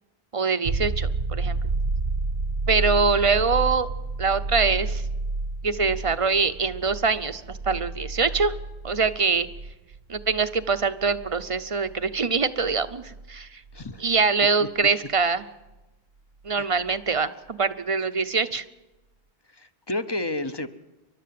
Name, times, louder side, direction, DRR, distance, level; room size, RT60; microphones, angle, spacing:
voice 1, 0.3-1.6 2.7-3.9 4.2-5.0 5.6-8.5 8.8-9.5 10.1-13.5 14.0-15.4 16.4-18.6, right 4 dB, 35° right, 11 dB, 0.8 m, -24 dB
Trailer Sub, 0.6-14.2 16.9-17.0, right 3 dB, 65° right, 1.2 m, -31 dB
voice 2, 13.7-14.0 14.6-14.7 16.6-16.7 19.5-20.7, left 2 dB, 25° left, 11 dB, 0.8 m, -31 dB
29.0 x 12.0 x 7.7 m, 1.1 s
omnidirectional pair, 1.0 m